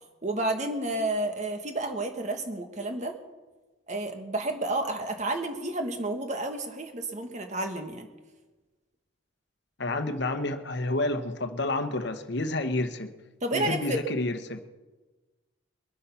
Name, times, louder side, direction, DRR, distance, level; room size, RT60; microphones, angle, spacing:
voice 1, 0.2-3.2 3.9-8.1 13.4-14.0, right 2 dB, 35° right, 5 dB, 1.4 m, -31 dB
voice 2, 9.8-13.1 13.5-14.6, left 2 dB, 55° left, 8 dB, 1.0 m, -29 dB
22.5 x 8.5 x 5.7 m, 1.2 s
head